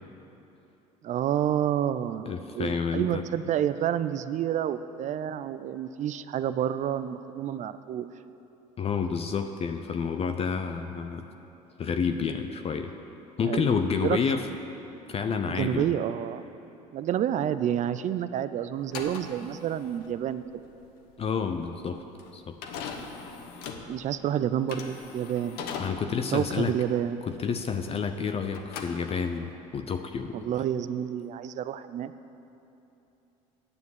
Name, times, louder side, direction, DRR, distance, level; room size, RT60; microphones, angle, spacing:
voice 1, 1.0-8.1 13.4-13.7 14.0-14.2 15.5-16.4 16.9-20.4 23.9-25.6 26.3-27.2 30.3-32.1, right 10 dB, 45° right, 13 dB, 0.5 m, -29 dB
voice 2, 2.3-3.2 8.8-11.3 11.8-12.9 13.4-14.5 15.1-15.9 21.2-22.0 22.3-22.6 25.8-26.8 27.2-30.5, left 6 dB, 35° left, 7 dB, 0.7 m, -29 dB
sound 1, 18.8-28.2 28.5-29.5, left 5 dB, 70° left, 1.1 m, -40 dB
9.7 x 7.2 x 8.0 m, 3.0 s
supercardioid pair, 80°, 17 cm